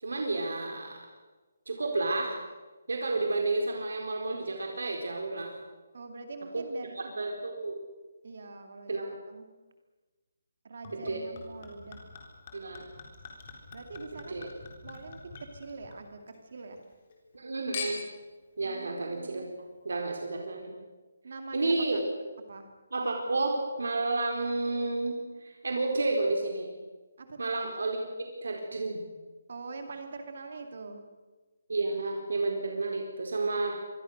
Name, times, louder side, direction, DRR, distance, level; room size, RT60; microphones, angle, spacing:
voice 1, 0.0-1.0 1.7-2.4 2.9-5.5 6.5-6.7 6.9-7.8 8.9-9.0 10.9-11.2 12.5-12.9 14.3-14.5 17.3-18.0 18.6-20.8 21.5-22.0 22.9-26.7 27.4-28.0 28.4-29.0 31.7-33.8, right 2 dB, 80° right, 2 dB, 4.4 m, -31 dB
voice 2, 5.9-7.3 8.2-9.5 10.6-12.0 13.7-14.5 14.8-16.8 18.6-19.5 21.2-22.0 22.5-22.7 27.2-27.6 29.5-31.0, right 3 dB, 45° right, 5 dB, 2.7 m, -44 dB
Chink clink / Liquid, 10.8-16.4 16.7-17.4 17.7-18.3 19.0-19.1, left 4 dB, 25° left, 3.9 m, -44 dB
26.5 x 22.0 x 6.7 m, 1.3 s
hypercardioid pair, 180°, 0 cm